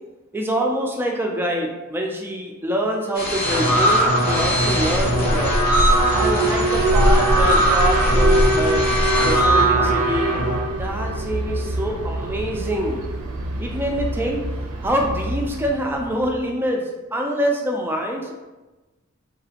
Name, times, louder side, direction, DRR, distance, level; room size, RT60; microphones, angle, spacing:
voice 1, 0.3-5.5 6.1-8.8 9.2-10.4 10.8-13.0 13.6-14.4 14.8-18.3, equal, 10° right, 0 dB, 0.3 m, -25 dB
sound 1, 3.1-9.4, left 1 dB, 45° left, 0.5 m, -29 dB
sound 2, 3.4-10.6, right 1 dB, 85° left, 0.8 m, -21 dB
Alarm, 4.4-16.4, right 1 dB, 85° right, 0.4 m, -23 dB
2.9 x 2.4 x 2.8 m, 1.1 s
head